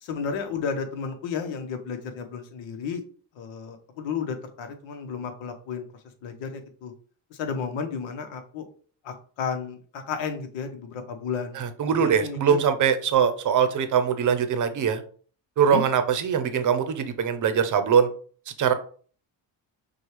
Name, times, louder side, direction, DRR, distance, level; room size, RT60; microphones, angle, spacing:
voice 1, 0.0-3.0 3.4-5.8 6.2-6.9 7.3-8.7 9.0-11.6 12.0-12.6 15.7-15.8, left 6 dB, 70° left, 7 dB, 1.1 m, -32 dB
voice 2, 11.5-15.0 15.6-18.1 18.6-18.7, right 7 dB, 40° right, 10 dB, 0.7 m, -22 dB
6.0 x 2.4 x 3.2 m, 0.44 s
cardioid pair, 100°, 47 cm